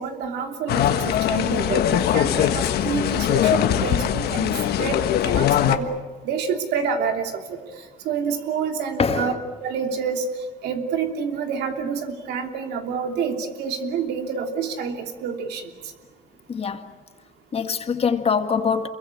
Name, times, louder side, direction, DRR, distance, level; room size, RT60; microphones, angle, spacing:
voice 1, 0.0-5.9 6.2-9.3 9.6-10.2 10.6-15.7, right 6 dB, 80° right, 3.1 m, -28 dB
sound 1, 0.7-5.8, left 11 dB, 70° left, 1.5 m, -21 dB
voice 2, 9.0-9.4 16.5-16.9 17.5-18.9, left 6 dB, 35° left, 1.9 m, -23 dB
27.5 x 22.5 x 8.5 m
cardioid pair, 110°, 17 cm